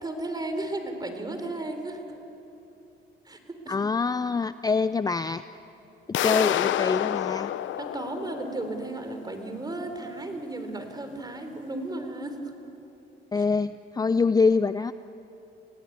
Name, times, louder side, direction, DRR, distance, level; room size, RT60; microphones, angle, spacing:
voice 1, 0.0-2.0 3.3-3.8 7.8-12.4 13.4-13.5, right 2 dB, 20° right, 6 dB, 4.0 m, -34 dB
voice 2, 3.7-5.4 6.2-7.5 13.3-14.9, left 4 dB, 20° left, 12 dB, 0.5 m, -25 dB
sound 1, 6.1-9.0, left 12 dB, 75° left, 0.7 m, -28 dB
28.5 x 18.0 x 9.5 m, 2.9 s
cardioid pair, 90°, 20 cm